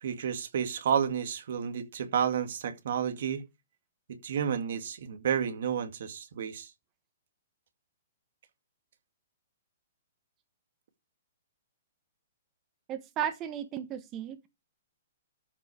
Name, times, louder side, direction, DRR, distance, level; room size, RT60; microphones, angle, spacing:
voice 1, 0.0-3.4 4.1-6.7, right 8 dB, 65° right, 2.1 m, -31 dB
voice 2, 12.9-14.5, right 10 dB, 30° right, 1.2 m, -35 dB
13.5 x 5.7 x 5.0 m
hypercardioid pair, 140°, 0 cm